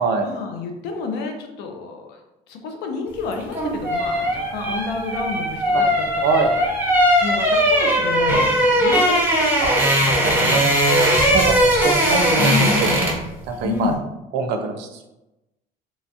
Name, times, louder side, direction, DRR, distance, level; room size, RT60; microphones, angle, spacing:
voice 1, 0.2-2.2 2.5-6.5 7.2-9.3 9.9-11.6 12.0-12.9 13.6-14.0, left 4 dB, 80° left, 3 dB, 0.6 m, -30 dB
sound 1, 3.3-13.3 13.6-13.8, equal, 10° right, 0.8 m, -19 dB
voice 2, 6.2-6.5 9.6-9.8 10.2-10.6 11.3-12.9 13.5-13.9 14.3-15.1, right 4 dB, 85° right, 5 dB, 0.5 m, -23 dB
3.0 x 2.3 x 2.7 m, 0.96 s
cardioid pair, 110°, 17 cm